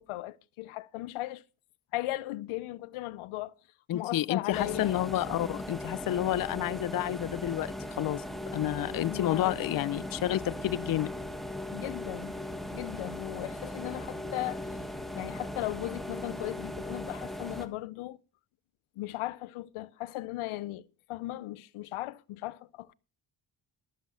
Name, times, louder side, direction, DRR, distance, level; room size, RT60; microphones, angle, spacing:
voice 1, 0.0-1.4 1.9-3.6 3.9-4.9 8.9-9.7 11.7-12.3 12.7-14.8 15.1-18.2 19.0-22.9, left 17 dB, 90° left, 0.7 m, -37 dB
voice 2, 3.9-8.2 8.5-11.1, left 13 dB, 45° left, 0.5 m, -30 dB
sound 1, 4.5-17.7, left 1 dB, ahead, 1.6 m, -38 dB
13.0 x 7.4 x 5.5 m
cardioid pair, 65°, 48 cm